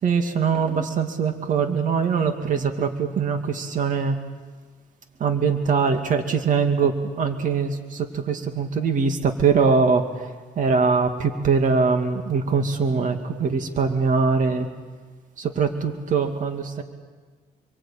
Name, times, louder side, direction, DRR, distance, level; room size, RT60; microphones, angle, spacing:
voice 1, 0.0-4.2 5.2-14.7 15.4-16.8, right 5 dB, 50° right, 6 dB, 2.4 m, -22 dB
27.5 x 23.0 x 8.9 m, 1.4 s
cardioid pair, 110°, 17 cm